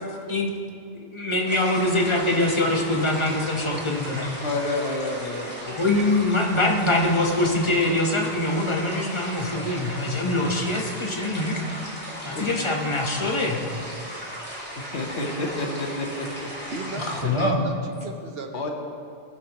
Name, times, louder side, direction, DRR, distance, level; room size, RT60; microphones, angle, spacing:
voice 1, 1.0-4.3 5.6-11.9 12.2-13.6 17.0-17.6, left 2 dB, 30° left, 0 dB, 1.0 m, -24 dB
sound 1, 1.5-17.2, equal, 10° left, 2.2 m, -36 dB
voice 2, 4.4-5.8 12.3-12.5 14.8-16.5 18.5-18.7, left 2 dB, 75° left, 1 dB, 1.4 m, -29 dB
voice 3, 16.6-18.7, right 3 dB, 65° right, 4 dB, 1.0 m, -36 dB
16.0 x 6.4 x 2.9 m, 2.3 s
omnidirectional pair, 1.1 m